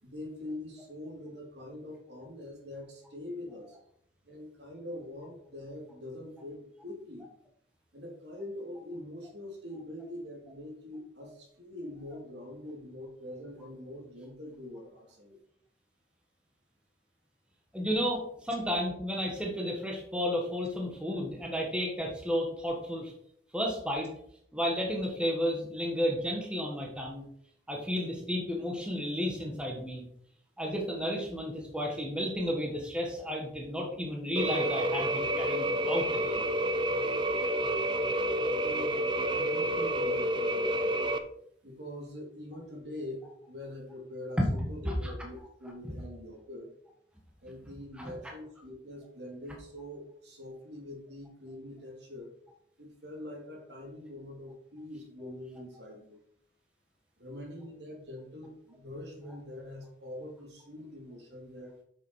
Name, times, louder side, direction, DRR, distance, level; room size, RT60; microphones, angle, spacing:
voice 1, 0.0-3.7 4.2-7.3 7.9-15.4 38.0-38.1 38.6-39.0 39.3-41.0 41.6-46.7 47.4-52.3 52.8-56.2 57.2-61.8, left 1 dB, 65° right, 1 dB, 3.0 m, -44 dB
voice 2, 17.7-23.1 23.5-24.1 24.5-27.2 27.7-30.0 30.6-36.4 44.4-44.5 44.8-44.9 48.0-48.1, equal, 5° right, 0 dB, 1.6 m, -32 dB
sound 1, 34.4-41.2, right 1 dB, 25° right, 0.7 m, -29 dB
8.4 x 6.8 x 4.8 m, 0.67 s
head